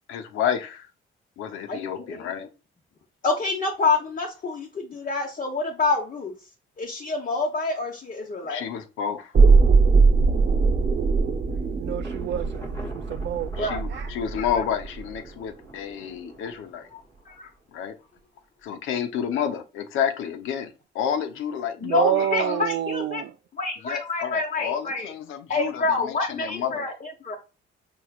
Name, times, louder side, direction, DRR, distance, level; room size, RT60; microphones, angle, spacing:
voice 1, 0.1-0.8 1.4-2.5 8.4-9.3 13.6-16.9 17.7-17.9 18.6-22.6 23.8-26.9, left 8 dB, 85° left, 0.8 m, -30 dB
voice 2, 1.7-2.5 3.2-6.3 6.8-8.7 13.5-14.1 14.4-14.6 16.9-17.5 21.8-23.2 23.5-25.1 25.5-27.4, left 3 dB, 40° left, 1.0 m, -27 dB
sound 1, 9.3-15.3 15.6-15.7, right 4 dB, 45° right, 0.9 m, -21 dB
voice 3, 11.5-14.1 21.8-23.3, right 10 dB, 65° right, 0.4 m, -29 dB
Thunder, 12.0-17.7, left 1 dB, 15° left, 1.2 m, -45 dB
4.6 x 3.1 x 2.4 m
cardioid pair, 90°, 20 cm